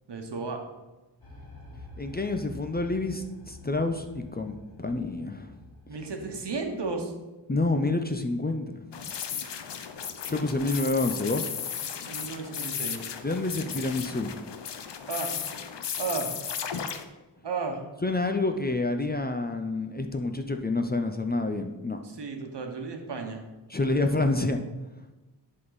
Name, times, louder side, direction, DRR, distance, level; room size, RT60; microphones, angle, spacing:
voice 1, 0.1-0.6 5.9-7.1 12.0-13.0 15.1-15.4 16.0-16.4 17.4-17.8 22.0-23.4, right 4 dB, 70° right, 3 dB, 1.2 m, -33 dB
sound 1, 1.2-7.0, left 2 dB, 55° left, 2.3 m, -48 dB
voice 2, 2.0-5.5 7.5-8.9 10.3-11.5 13.2-14.4 18.0-22.0 23.7-24.6, left 2 dB, 20° left, 6 dB, 0.5 m, -28 dB
sound 2, 8.9-17.0, left 7 dB, 70° left, 0.7 m, -35 dB
10.5 x 3.8 x 4.0 m, 1.1 s
wide cardioid pair, 80°, 43 cm